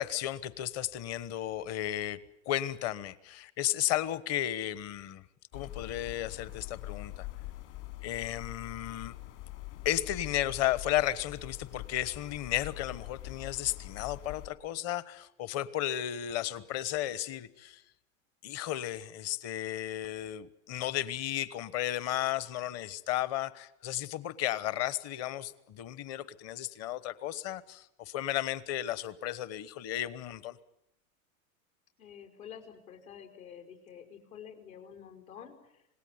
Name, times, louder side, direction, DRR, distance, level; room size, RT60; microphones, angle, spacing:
voice 1, 0.0-2.2 2.4-5.2 5.5-7.3 8.0-9.1 9.8-17.8 18.4-30.6, left 13 dB, 35° left, 18 dB, 1.2 m, -34 dB
sound 1, 5.5-14.5, left 18 dB, 55° left, 5.0 m, -44 dB
voice 2, 32.0-35.9, left 8 dB, 75° left, 5 dB, 5.2 m, -49 dB
26.5 x 19.0 x 9.5 m, 0.80 s
hypercardioid pair, 125°, 42 cm